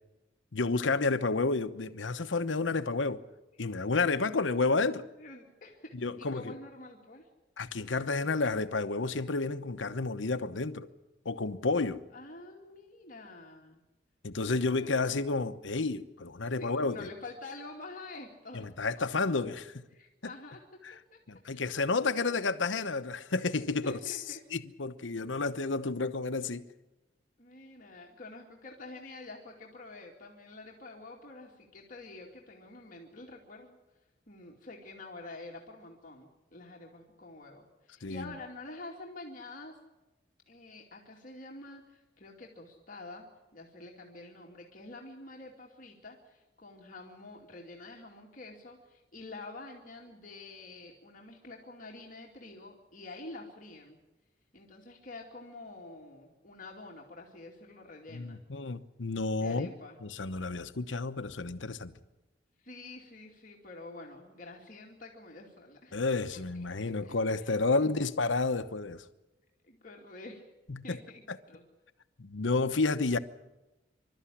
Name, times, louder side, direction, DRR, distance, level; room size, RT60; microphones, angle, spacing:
voice 1, 0.5-3.2 3.6-5.1 5.9-6.5 7.6-10.9 11.2-12.0 14.2-17.1 18.5-19.9 20.2-20.3 20.8-20.9 21.3-24.2 24.5-26.7 38.0-38.3 58.1-59.7 60.0-61.9 65.9-69.0 70.7-71.0 72.2-73.2, left 3 dB, 85° left, 1.0 m, -31 dB
voice 2, 5.2-7.3 12.1-13.8 14.5-15.2 16.4-18.7 19.0-19.3 19.9-21.2 21.5-22.6 23.8-24.4 27.4-33.8 34.3-39.8 40.5-54.0 54.5-58.4 59.4-60.0 62.6-66.0 66.5-67.9 69.6-70.5 70.8-71.6, left 2 dB, 45° left, 2.5 m, -48 dB
27.0 x 13.0 x 10.0 m
head